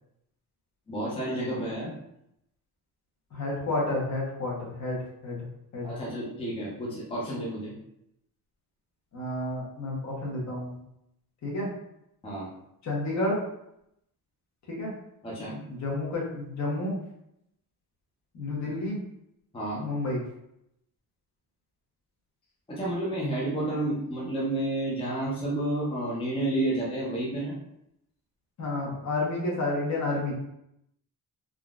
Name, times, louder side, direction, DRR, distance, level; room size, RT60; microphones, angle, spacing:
voice 1, 0.9-1.9 5.8-7.7 12.2-12.5 15.2-15.6 19.5-19.9 22.7-27.5, right 1 dB, 15° left, -6 dB, 0.6 m, -30 dB
voice 2, 3.3-5.4 5.7-5.9 9.1-10.8 11.4-11.7 12.8-13.4 14.7-14.9 15.8-17.0 18.3-19.0 19.8-20.2 28.6-30.3, left 2 dB, 45° left, -3 dB, 1.0 m, -30 dB
3.7 x 2.3 x 2.4 m, 0.79 s
wide cardioid pair, 150°, 37 cm